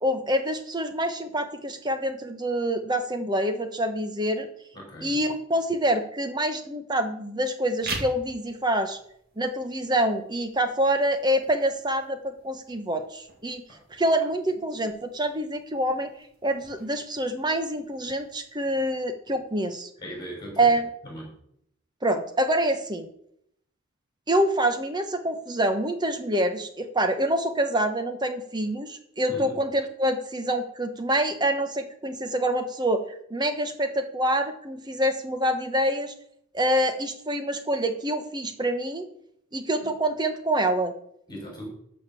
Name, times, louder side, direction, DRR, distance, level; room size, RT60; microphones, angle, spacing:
voice 1, 0.0-4.5 5.0-9.0 9.4-13.6 13.9-16.1 16.4-19.9 20.6-20.9 22.0-23.1 24.3-36.1 36.5-39.1 39.5-40.9, right 1 dB, 20° right, 7 dB, 1.1 m, -26 dB
voice 2, 4.7-5.2 13.7-13.8 20.0-20.7 21.0-21.3 29.3-29.6 39.8-39.9 41.3-41.7, equal, 20° left, -1 dB, 5.5 m, -38 dB
sound 1, 7.7-18.7, right 3 dB, 45° right, 2.3 m, -44 dB
13.0 x 5.2 x 7.1 m, 0.71 s
head